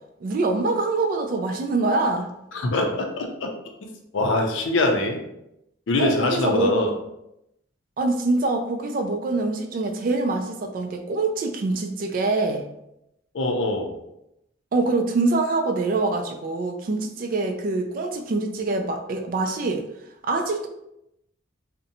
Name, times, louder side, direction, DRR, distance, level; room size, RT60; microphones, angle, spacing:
voice 1, 0.2-2.3 6.0-7.0 8.0-12.6 14.7-19.9 20.2-20.7, right 3 dB, 45° right, 5 dB, 0.3 m, -24 dB
voice 2, 2.5-3.5 4.1-5.2 5.9-6.9 13.3-13.9, left 2 dB, 75° left, 2 dB, 0.5 m, -23 dB
2.6 x 2.1 x 2.6 m, 0.83 s
head